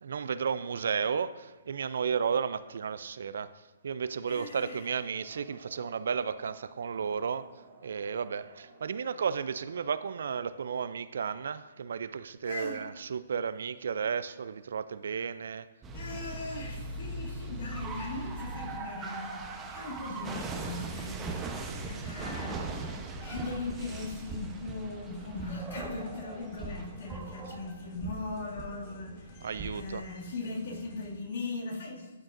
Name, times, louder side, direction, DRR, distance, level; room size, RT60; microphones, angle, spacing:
voice 1, 0.0-3.5 3.8-7.5 7.8-15.7 29.4-30.0, right 6 dB, 70° right, 15 dB, 0.3 m, -33 dB
voice 2, 4.3-4.9 12.4-12.9 15.9-21.6 21.8-23.0 23.2-32.1, left 3 dB, 65° left, -3 dB, 2.1 m, -39 dB
sound 1, 5.1-10.9, right 2 dB, 35° right, 2.4 m, -56 dB
sound 2, 15.8-30.0, right 3 dB, 15° right, 0.8 m, -40 dB
sound 3, 23.7-31.1, left 2 dB, 35° left, 1.4 m, -55 dB
12.5 x 6.2 x 2.5 m, 1.2 s
hypercardioid pair, 140°, 0 cm